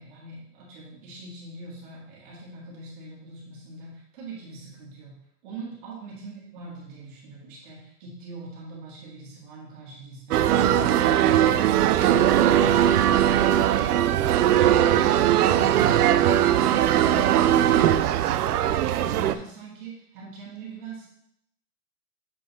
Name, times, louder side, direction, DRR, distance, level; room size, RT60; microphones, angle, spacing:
voice 1, 0.0-21.1, right 2 dB, 30° right, -5 dB, 1.7 m, -43 dB
sound 1, 10.3-19.4, right 11 dB, 70° right, 0.5 m, -20 dB
7.7 x 3.7 x 4.1 m, 0.72 s
hypercardioid pair, 170°, 48 cm